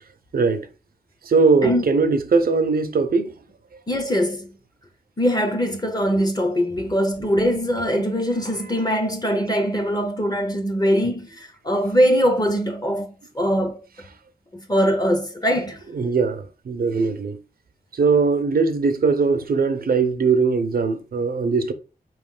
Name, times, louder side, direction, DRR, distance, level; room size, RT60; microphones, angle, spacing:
voice 1, 0.3-0.7 1.2-3.3 8.6-8.9 15.9-17.4 17.9-21.7, right 4 dB, 60° right, 0.6 m, -20 dB
voice 2, 3.9-4.5 5.2-13.1 13.3-13.8 14.5-15.8, equal, 25° left, 0.8 m, -22 dB
4.6 x 3.1 x 3.6 m
wide cardioid pair, 150°, 17 cm